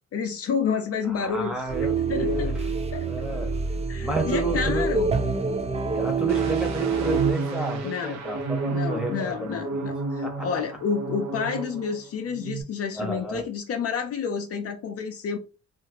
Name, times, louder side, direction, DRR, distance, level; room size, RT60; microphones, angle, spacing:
voice 1, 0.1-1.7 2.1-2.5 2.9-3.1 3.9-5.1 7.8-8.2 8.7-15.4, left 6 dB, 50° left, 0.5 m, -29 dB
voice 2, 1.1-3.6 4.0-4.9 5.9-9.9 10.2-10.5 12.9-13.4, right 1 dB, 5° right, 0.9 m, -31 dB
sound 1, 1.7-7.3, right 4 dB, 20° right, 0.5 m, -26 dB
sound 2, 6.3-12.0 12.3-12.6, right 3 dB, 65° right, 0.7 m, -31 dB
2.8 x 2.5 x 2.8 m
cardioid pair, 90°, 30 cm